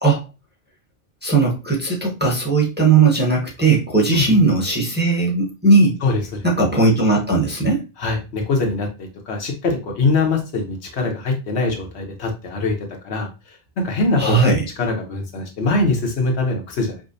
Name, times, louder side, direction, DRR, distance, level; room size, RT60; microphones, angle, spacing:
voice 1, 1.2-6.0 6.4-7.8 14.2-14.6, right 3 dB, 10° right, -3 dB, 0.8 m, -17 dB
voice 2, 6.0-6.5 8.0-17.0, left 3 dB, 85° left, 2 dB, 1.1 m, -23 dB
4.9 x 2.1 x 2.6 m, 0.28 s
omnidirectional pair, 1.1 m